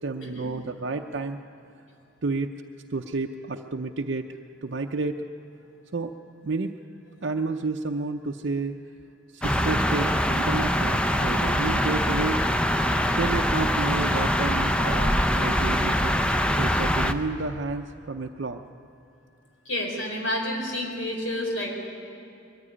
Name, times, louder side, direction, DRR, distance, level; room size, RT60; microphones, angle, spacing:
voice 1, 0.0-1.4 2.2-2.5 2.9-5.2 5.9-6.2 6.4-6.7 7.2-8.7 9.3-12.4 13.1-16.1 16.6-18.6, right 3 dB, 60° right, 2 dB, 0.6 m, -30 dB
sound 1, 9.4-17.1, equal, 5° left, 0.7 m, -23 dB
voice 2, 19.6-21.7, left 1 dB, 85° left, 1 dB, 4.7 m, -29 dB
21.5 x 14.5 x 10.0 m, 2.6 s
head